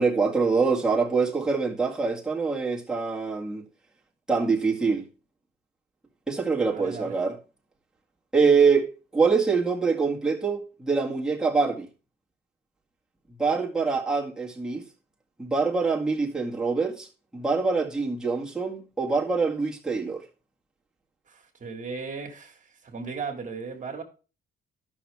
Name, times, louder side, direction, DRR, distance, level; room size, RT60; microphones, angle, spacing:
voice 1, 0.0-3.6 4.3-5.1 6.3-7.4 8.3-11.9 13.4-14.9 15.4-17.1 17.3-20.2, right 4 dB, 5° right, 1.9 m, -24 dB
voice 2, 6.7-7.1 21.3-22.6 22.8-24.0, right 5 dB, 40° right, 1.9 m, -36 dB
12.5 x 6.1 x 3.5 m
cardioid pair, 90°, 20 cm